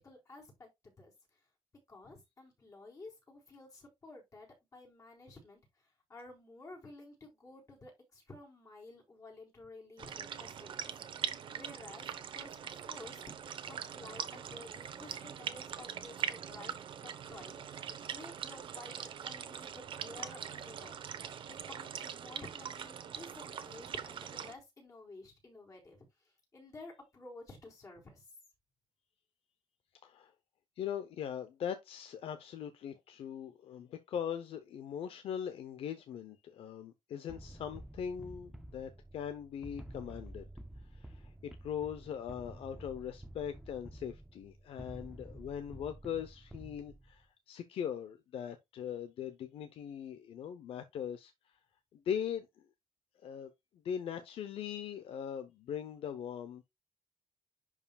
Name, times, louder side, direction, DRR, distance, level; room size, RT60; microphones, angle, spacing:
voice 1, 0.0-1.5 1.9-21.0 21.5-28.3, left 2 dB, 35° left, 4.4 m, -53 dB
sound 1, 10.0-24.5, right 8 dB, 60° right, 0.9 m, -42 dB
voice 2, 30.8-40.5 40.9-51.5 51.9-52.5 53.2-53.5 53.8-56.6, left 8 dB, 90° left, 0.7 m, -40 dB
sound 2, 37.3-47.2, right 1 dB, 5° right, 0.6 m, -50 dB
11.0 x 4.9 x 2.3 m
wide cardioid pair, 155°, 10 cm